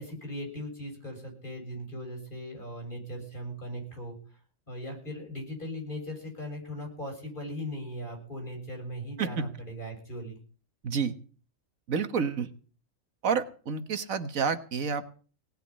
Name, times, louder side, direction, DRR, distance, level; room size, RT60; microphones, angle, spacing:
voice 1, 0.0-4.4 4.7-10.4, equal, 40° left, 1 dB, 7.5 m, -39 dB
voice 2, 11.9-12.5 13.2-15.2, right 6 dB, 80° right, 10 dB, 1.7 m, -29 dB
18.5 x 6.8 x 9.9 m, 0.40 s
omnidirectional pair, 1.4 m